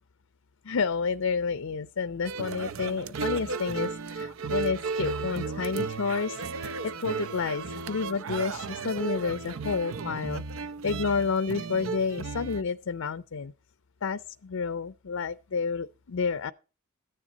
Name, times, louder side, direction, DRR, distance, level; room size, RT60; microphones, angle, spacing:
voice 1, 0.6-13.5 14.0-16.5, left 5 dB, 80° left, 0.6 m, -30 dB
sound 1, 2.2-12.6, right 4 dB, 75° right, 0.6 m, -34 dB
14.0 x 10.0 x 4.1 m
head